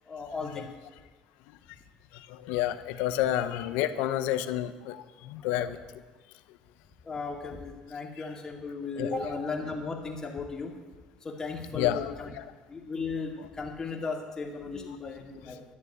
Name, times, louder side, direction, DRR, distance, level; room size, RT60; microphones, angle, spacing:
voice 1, 0.1-0.7 5.5-5.7 7.0-10.7 11.2-12.3 12.7-15.6, left 4 dB, 25° left, 0 dB, 2.3 m, -36 dB
voice 2, 2.4-5.8 9.0-9.2 11.7-12.4 14.7-14.9, left 12 dB, 90° left, 12 dB, 0.7 m, -30 dB
12.5 x 6.9 x 9.1 m, 1.3 s
cardioid pair, 115°, 3 cm